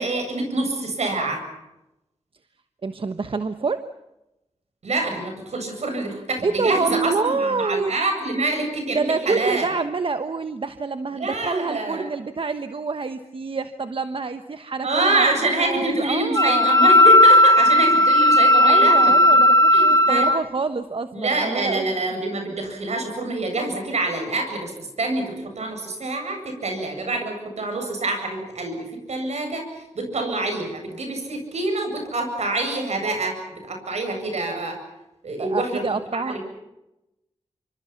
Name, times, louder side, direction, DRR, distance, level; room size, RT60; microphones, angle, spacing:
voice 1, 0.0-1.4 4.8-9.7 11.1-12.1 14.8-19.4 19.7-20.3 21.1-24.7 25.0-34.8 35.2-35.8 36.2-36.4, right 2 dB, 75° right, 4 dB, 7.8 m, -26 dB
voice 2, 2.8-3.9 6.1-7.9 8.9-16.7 18.6-22.0 35.4-36.4, right 4 dB, 50° right, 10 dB, 1.2 m, -27 dB
Wind instrument woodwind instrument, 16.3-20.4, left 1 dB, 30° left, 1.9 m, -14 dB
27.5 x 25.5 x 5.9 m, 0.92 s
cardioid pair, 60°, 11 cm